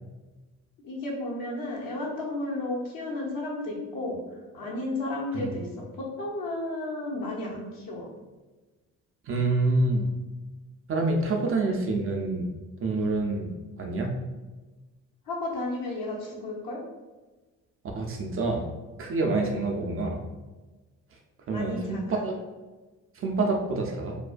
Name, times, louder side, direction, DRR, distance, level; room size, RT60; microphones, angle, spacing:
voice 1, 0.8-4.2 4.5-8.1 15.3-16.8 21.5-22.2, left 2 dB, 55° left, -3 dB, 0.9 m, -33 dB
voice 2, 9.3-10.1 10.9-12.5 12.8-13.5 13.8-14.1 17.9-18.7 19.0-20.2 21.5-22.4 23.2-24.2, right 2 dB, 35° right, 1 dB, 0.4 m, -27 dB
2.5 x 2.1 x 2.4 m, 1.2 s
hypercardioid pair, 55°, 40 cm